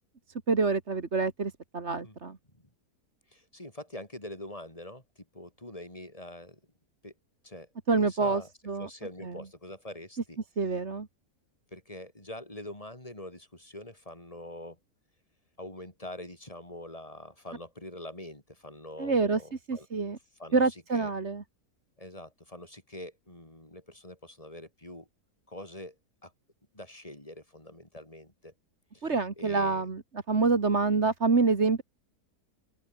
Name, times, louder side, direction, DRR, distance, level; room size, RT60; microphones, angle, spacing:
voice 1, 0.5-2.4 7.9-8.9 9.2-9.3 10.6-11.1 19.0-19.4 19.7-20.2 20.5-21.4 29.0-30.0 30.3-31.8, right 4 dB, 45° right, 2.3 m, -26 dB
voice 2, 3.3-6.6 7.0-7.1 7.4-8.5 8.8-10.4 11.7-14.8 15.6-19.9 20.4-21.1 22.0-25.1 25.5-26.0 26.2-26.3 26.7-28.5 28.9-29.9, left 1 dB, 20° left, 4.4 m, -44 dB
open air
omnidirectional pair, 1.6 m